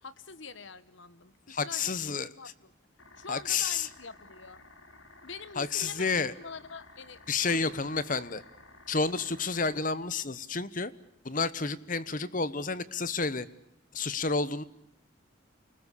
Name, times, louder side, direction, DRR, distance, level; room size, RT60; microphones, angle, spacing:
voice 1, 0.0-2.7 3.2-4.6 5.2-7.2 7.5-7.7, left 4 dB, 70° left, 16 dB, 1.3 m, -45 dB
voice 2, 1.5-2.3 3.3-3.9 5.6-6.3 7.3-8.4 8.9-10.9 11.2-13.5 13.9-14.6, left 4 dB, 40° left, 16 dB, 1.1 m, -30 dB
sound 1, 3.0-9.8, left 2 dB, 90° left, 4.1 m, -54 dB
28.5 x 20.0 x 8.4 m, 0.80 s
head